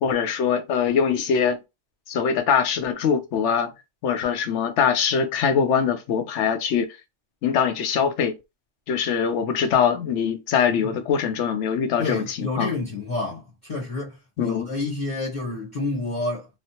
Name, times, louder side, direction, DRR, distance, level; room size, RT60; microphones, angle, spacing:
voice 1, 0.0-1.6 2.1-3.7 4.0-6.9 7.4-8.4 8.9-12.7 14.4-14.7, left 7 dB, 70° left, 0.9 m, -22 dB
voice 2, 12.0-16.5, left 2 dB, 40° left, 0.9 m, -29 dB
3.1 x 2.0 x 2.7 m
omnidirectional pair, 1.3 m